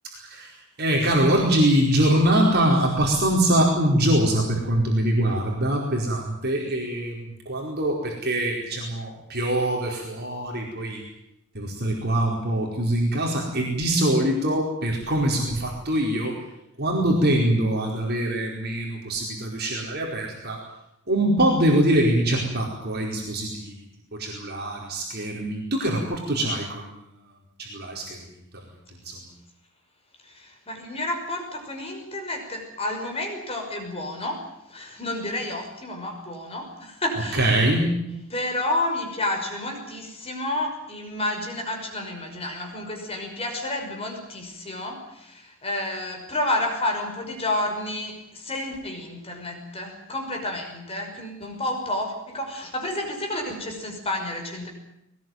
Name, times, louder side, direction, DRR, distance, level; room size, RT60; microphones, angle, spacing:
voice 1, 0.1-11.0 11.5-16.3 16.8-20.6 21.1-23.7 24.2-26.9 27.6-28.2 29.0-29.2 37.3-38.0, right 1 dB, 50° right, -1 dB, 4.7 m, -23 dB
voice 2, 30.3-37.5 38.3-54.7, left 1 dB, 30° left, 2 dB, 5.8 m, -30 dB
21.5 x 19.5 x 9.4 m, 0.82 s
head